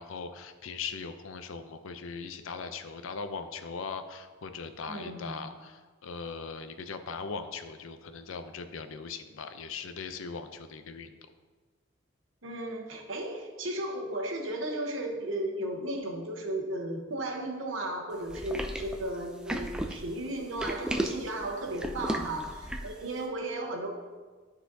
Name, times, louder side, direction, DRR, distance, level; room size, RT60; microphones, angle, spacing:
voice 1, 0.0-11.2, left 5 dB, 85° left, 9 dB, 0.5 m, -39 dB
voice 2, 4.9-5.5 12.4-23.9, right 1 dB, 75° right, 2 dB, 1.0 m, -35 dB
sound 1, 18.3-23.0, right 1 dB, 5° right, 0.3 m, -34 dB
12.0 x 4.0 x 2.7 m, 1.4 s
head